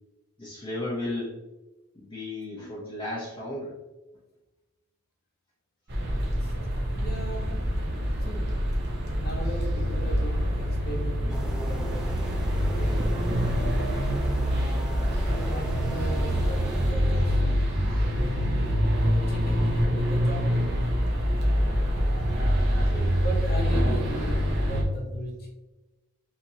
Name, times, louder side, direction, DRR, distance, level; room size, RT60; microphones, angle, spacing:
voice 1, 0.4-1.4 2.0-3.7 12.8-13.0 17.9-18.2 22.9-23.2, left 1 dB, 20° left, -6 dB, 0.8 m, -35 dB
sound 1, 5.9-24.8, equal, 50° right, 1.0 m, -25 dB
voice 2, 6.4-7.6 8.1-8.5 9.2-12.1 12.7-13.0 15.3-17.4 18.0-20.6 23.2-25.5, equal, 45° left, -1 dB, 1.1 m, -37 dB
sound 2, 11.3-16.9, equal, 5° right, 0.4 m, -37 dB
5.5 x 3.0 x 2.9 m, 1.1 s
head